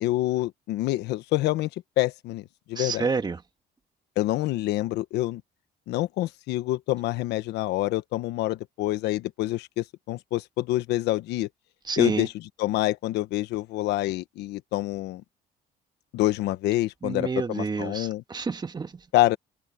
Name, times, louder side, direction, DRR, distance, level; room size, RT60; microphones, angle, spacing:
voice 1, 0.0-1.7 2.0-3.1 4.2-5.4 5.9-11.5 12.0-12.3 12.6-15.2 16.1-18.2 19.1-19.4, left 16 dB, 85° left, 1.2 m, -26 dB
voice 2, 2.7-3.4 11.8-12.3 17.0-19.0, right 4 dB, 25° right, 1.6 m, -29 dB
cardioid pair, 110°, 17 cm